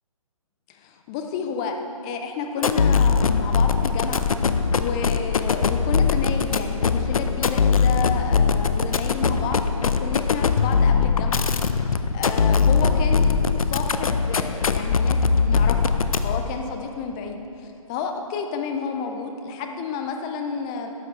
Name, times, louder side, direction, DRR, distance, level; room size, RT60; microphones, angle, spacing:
voice 1, 0.7-4.2 4.7-11.5 11.8-20.9, left 5 dB, 10° left, 4 dB, 0.3 m, -31 dB
sound 1, 2.6-16.5, left 5 dB, 70° left, 0.6 m, -21 dB
13.0 x 8.1 x 4.4 m, 2.9 s
figure-of-eight pair, 145°, 19 cm